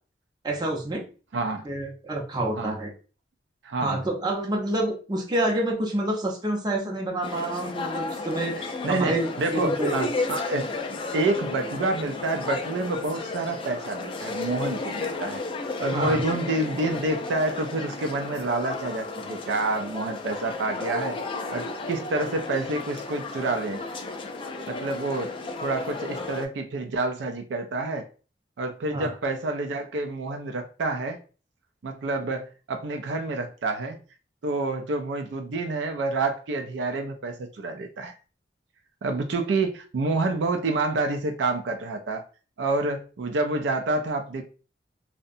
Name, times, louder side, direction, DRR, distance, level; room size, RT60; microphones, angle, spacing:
voice 1, 0.4-1.1 1.6-2.9 3.8-9.9 15.9-16.2 28.9-29.1, right 1 dB, 25° right, 0.6 m, -28 dB
voice 2, 1.3-1.6 2.6-2.8 3.6-4.0 8.8-10.7 11.1-15.4 15.8-21.2 21.5-23.8 24.7-25.3 25.6-28.1 28.6-31.2 31.8-34.0 34.4-38.1 39.0-42.2 42.6-44.4, right 2 dB, 70° right, 0.4 m, -28 dB
sound 1, 7.2-26.4, left 3 dB, 30° left, 0.3 m, -33 dB
2.7 x 2.1 x 2.5 m
head